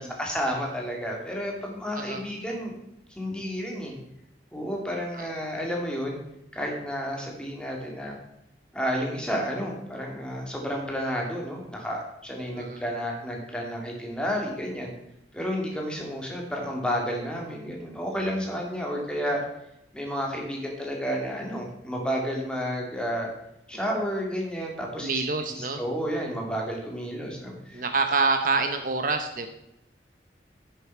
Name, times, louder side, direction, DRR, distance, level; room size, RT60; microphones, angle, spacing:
voice 1, 0.0-2.7 3.1-3.9 4.5-6.2 6.5-8.2 8.7-14.9 15.3-19.4 19.9-23.3 23.7-25.1 25.6-27.8, equal, 5° left, 0 dB, 2.0 m, -31 dB
voice 2, 25.0-25.8 27.7-29.5, right 4 dB, 50° right, 6 dB, 0.7 m, -27 dB
9.8 x 6.7 x 4.5 m, 0.86 s
head